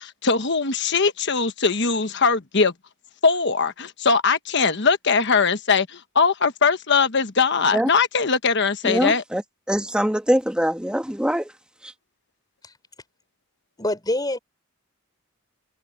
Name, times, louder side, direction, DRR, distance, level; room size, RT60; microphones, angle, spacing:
voice 1, 0.0-2.7 3.2-9.2, left 5 dB, 55° left, 1.2 m, -21 dB
voice 2, 8.8-9.4 9.7-11.5 11.8-11.9, equal, 5° right, 1.4 m, -23 dB
voice 3, 13.8-14.4, left 1 dB, 20° left, 4.5 m, -25 dB
open air
head